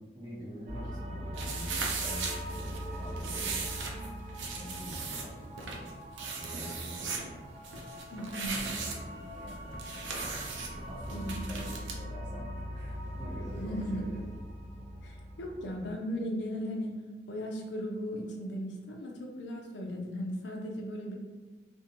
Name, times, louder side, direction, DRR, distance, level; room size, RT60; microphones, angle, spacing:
voice 1, 0.0-3.7 4.5-5.9 6.2-7.4 8.4-10.4 10.8-14.3, equal, 20° right, -15 dB, 0.9 m, -45 dB
sound 1, 0.7-15.9, equal, 40° right, 0.5 m, -42 dB
sound 2, 1.3-12.0, right 4 dB, 85° right, 0.5 m, -38 dB
voice 2, 8.1-8.6 11.1-11.5 13.5-14.0 15.0-17.0 17.3-21.2, equal, 75° left, 0 dB, 0.5 m, -37 dB
2.5 x 2.1 x 2.8 m, 1.2 s
head